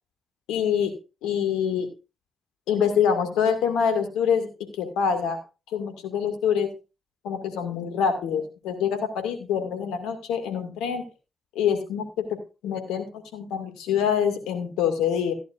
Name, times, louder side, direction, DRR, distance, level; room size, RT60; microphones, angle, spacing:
voice 1, 0.5-0.9 1.2-1.9 2.7-4.5 4.8-5.4 5.7-6.7 7.2-11.0 11.6-12.0 12.6-13.1 13.3-15.3, left 7 dB, 80° left, 6 dB, 2.2 m, -25 dB
14.5 x 10.5 x 2.6 m, 0.30 s
hypercardioid pair, 40°, 0 cm